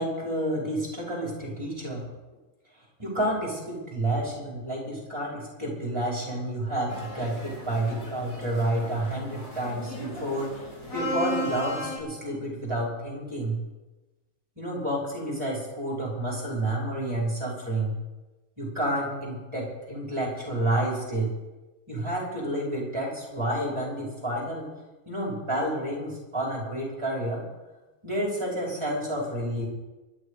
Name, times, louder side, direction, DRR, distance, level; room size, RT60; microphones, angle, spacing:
voice 1, 0.0-2.1 3.0-10.6 10.9-13.6 14.6-18.0 18.6-21.3 21.9-24.7 25.1-27.4 28.0-29.7, right 1 dB, 20° right, -3 dB, 5.5 m, -30 dB
sound 1, 6.9-12.0, equal, 75° left, 5.9 m, -35 dB
23.0 x 10.5 x 5.1 m, 1.1 s
omnidirectional pair, 1.6 m